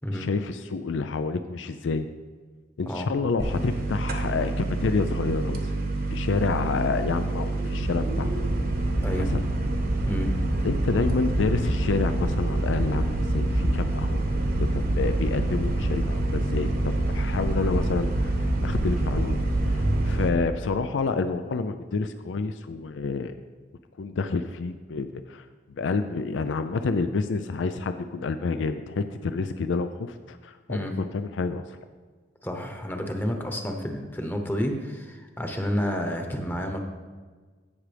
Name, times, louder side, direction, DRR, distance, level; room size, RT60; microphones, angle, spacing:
voice 1, 0.1-2.1 2.8-5.8 6.1-8.3 9.1-9.5 10.6-14.3 14.6-19.4 19.6-23.3 24.0-31.8, left 4 dB, 90° left, 10 dB, 0.4 m, -29 dB
sound 1, 3.4-20.3, right 2 dB, 50° right, 1.0 m, -26 dB
voice 2, 10.0-10.4 30.7-31.0 32.4-36.8, equal, 10° left, 4 dB, 0.9 m, -30 dB
16.0 x 6.1 x 3.4 m, 1.4 s
head